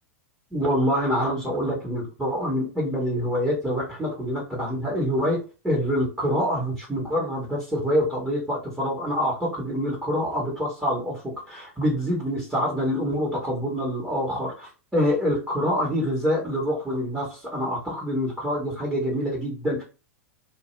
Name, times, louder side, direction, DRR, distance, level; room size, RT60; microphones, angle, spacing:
voice 1, 0.5-5.4 5.6-19.8, equal, 5° right, -6 dB, 0.9 m, -26 dB
2.2 x 2.0 x 3.0 m, 0.32 s
figure-of-eight pair, 95°, 8 cm